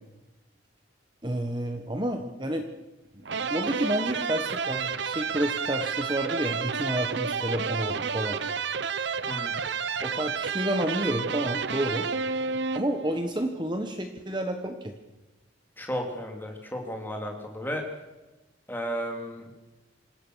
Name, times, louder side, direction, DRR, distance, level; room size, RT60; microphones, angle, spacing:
voice 1, 1.2-2.7 3.1-8.4 10.0-12.0 12.7-14.9, right 1 dB, 20° right, 5 dB, 1.5 m, -30 dB
sound 1, 3.3-13.2, right 5 dB, 60° right, 0.9 m, -30 dB
voice 2, 9.3-9.6 15.8-17.8 18.7-19.5, equal, 10° left, 2 dB, 3.4 m, -33 dB
26.5 x 16.5 x 6.5 m, 1.1 s
head